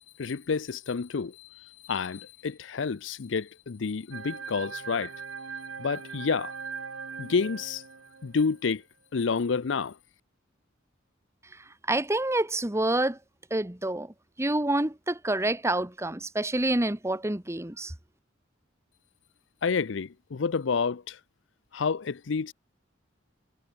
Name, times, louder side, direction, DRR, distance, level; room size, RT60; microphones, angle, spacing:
voice 1, 0.2-5.1 5.8-6.5 7.2-7.8 8.2-8.8 9.1-10.0 19.6-21.2 21.7-22.5, left 5 dB, 65° left, 0.5 m, -29 dB
sound 1, 4.1-8.6, right 5 dB, 85° right, 1.9 m, -40 dB
voice 2, 11.9-13.2 13.5-17.9, right 1 dB, 15° right, 1.4 m, -27 dB
head